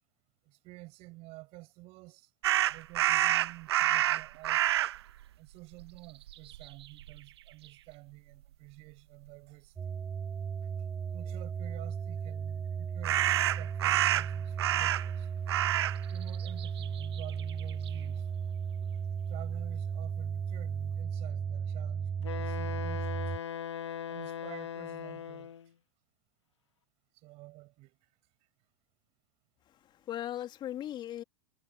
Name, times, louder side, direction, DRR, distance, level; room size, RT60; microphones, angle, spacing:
voice 1, 0.4-2.3 2.7-4.7 5.4-10.0 10.8-15.3 16.1-18.3 19.3-23.2 24.1-25.5 27.1-28.0, right 22 dB, 45° right, 7.4 m, -50 dB
sound 1, 2.4-5.0 5.8-6.0 6.3-7.2 13.0-15.2 15.5-16.0 16.3-17.9, right 13 dB, 65° right, 1.2 m, -28 dB
sound 2, 9.8-23.4, right 7 dB, 15° right, 0.3 m, -35 dB
Wind instrument woodwind instrument, 22.2-25.7, left 8 dB, 75° left, 1.9 m, -39 dB
voice 2, 29.7-31.2, left 12 dB, 30° left, 3.4 m, -38 dB
figure-of-eight pair, 95°, 15 cm